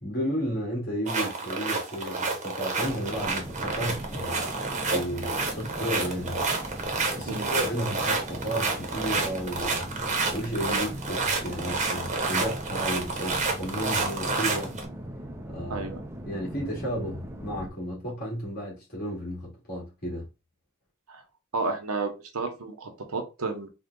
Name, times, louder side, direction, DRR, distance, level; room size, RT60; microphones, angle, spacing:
voice 1, 0.0-4.4 4.9-6.4 7.1-9.8 10.3-14.8 15.5-15.9 16.3-20.3, equal, 45° left, 2.2 m, -33 dB
sound 1, 1.1-14.8, right 3 dB, 35° right, 0.9 m, -29 dB
sound 2, 2.8-17.7, right 1 dB, 10° right, 0.5 m, -39 dB
voice 2, 15.7-16.0 21.1-21.2 21.5-23.7, right 3 dB, 80° right, 1.0 m, -32 dB
3.7 x 2.3 x 3.7 m
head